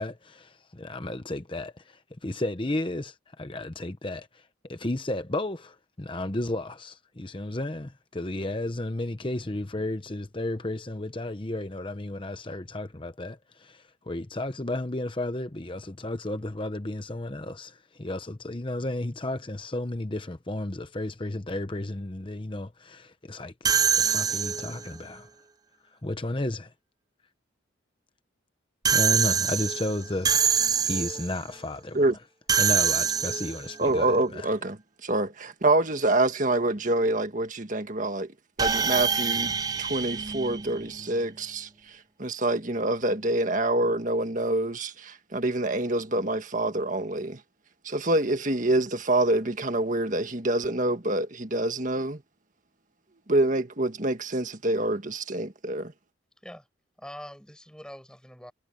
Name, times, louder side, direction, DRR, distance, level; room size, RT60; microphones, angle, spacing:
voice 1, 0.0-23.5 23.8-25.3 25.9-26.7 28.9-32.0 32.6-34.5, left 1 dB, 25° left, 0.9 m, -33 dB
sound 1, 23.6-24.9 28.8-31.4 32.5-33.8 38.6-41.1, right 6 dB, 20° right, 0.5 m, -25 dB
voice 2, 33.8-38.3 38.6-47.4 47.8-52.2 53.3-55.9, right 2 dB, 40° right, 1.7 m, -26 dB
voice 3, 56.4-56.7 57.0-58.5, equal, 5° left, 7.1 m, -44 dB
head